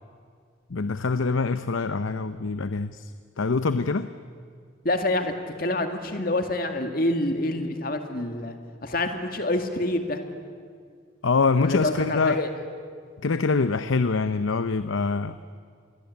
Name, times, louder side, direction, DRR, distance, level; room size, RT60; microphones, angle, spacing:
voice 1, 0.7-3.1 3.4-4.1 11.2-12.4 13.2-15.3, left 4 dB, 85° left, 12 dB, 0.7 m, -24 dB
voice 2, 4.8-5.3 5.6-8.6 8.8-10.2 11.6-12.5, left 1 dB, 50° left, 6 dB, 2.0 m, -27 dB
27.5 x 21.5 x 8.4 m, 2.1 s
head